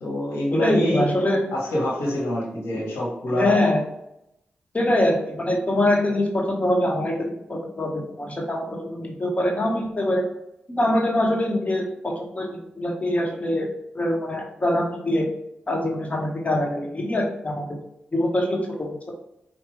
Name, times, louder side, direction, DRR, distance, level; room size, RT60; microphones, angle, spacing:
voice 1, 0.0-1.1 1.5-3.6, left 1 dB, 90° left, -4 dB, 1.3 m, -25 dB
voice 2, 0.6-1.4 3.4-3.8 4.7-10.2 10.7-13.7 13.9-15.2 15.7-17.7 18.1-19.1, left 1 dB, 35° left, 0 dB, 1.4 m, -24 dB
4.9 x 2.5 x 3.2 m, 0.82 s
supercardioid pair, 40°, 4 cm